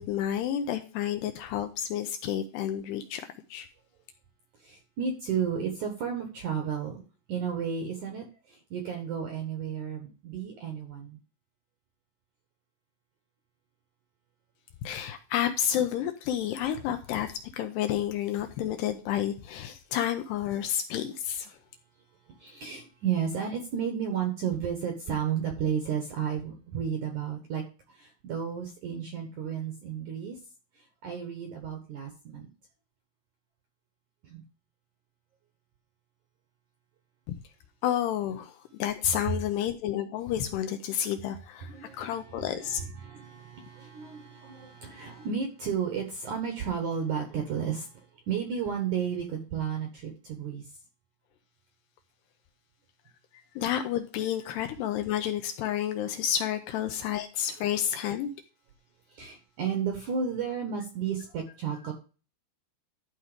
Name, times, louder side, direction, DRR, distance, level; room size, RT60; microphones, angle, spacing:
voice 1, 0.0-3.7 14.8-21.6 37.3-37.4 37.8-42.8 53.6-58.3, left 10 dB, 75° left, 2.6 m, -30 dB
voice 2, 4.6-7.0 7.3-11.2 22.4-27.6 28.0-30.4 31.0-32.5 34.2-34.4 39.3-39.4 41.7-50.6 59.1-61.9, right 7 dB, 65° right, 2.0 m, -33 dB
12.5 x 4.7 x 5.1 m
omnidirectional pair, 5.4 m